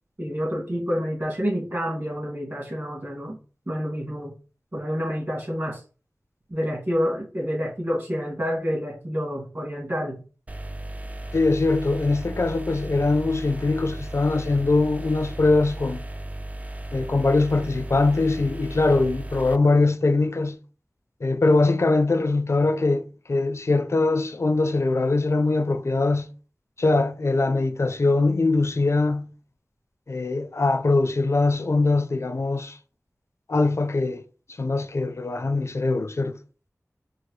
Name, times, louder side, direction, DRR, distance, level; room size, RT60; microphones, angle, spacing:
voice 1, 0.2-3.4 3.7-4.3 4.7-5.8 6.5-10.2, equal, 45° right, 1.9 m, -28 dB
sound 1, 10.5-19.6, right 1 dB, 25° right, 0.3 m, -35 dB
voice 2, 11.3-16.0 16.9-20.6 21.2-26.3 26.8-29.3 30.1-32.8 33.5-34.2 34.6-36.4, left 3 dB, 55° left, 0.4 m, -22 dB
4.6 x 2.0 x 3.1 m
wide cardioid pair, 50°, 6 cm